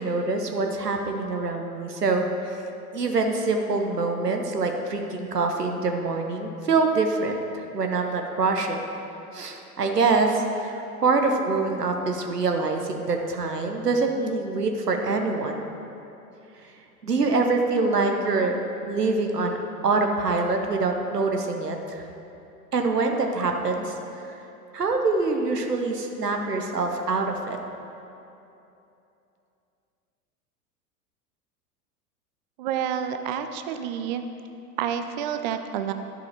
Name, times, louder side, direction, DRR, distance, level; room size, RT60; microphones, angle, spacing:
voice 1, 0.0-2.3 2.9-8.8 9.3-10.7 11.0-15.6 17.0-18.6 18.9-22.0 22.7-23.9 24.3-24.4 24.7-27.6, right 3 dB, 85° right, 3 dB, 0.9 m, -25 dB
voice 2, 32.6-34.2 34.8-35.9, right 9 dB, 35° right, 8 dB, 0.4 m, -29 dB
11.0 x 5.6 x 4.4 m, 2.8 s
figure-of-eight pair, 85°, 46 cm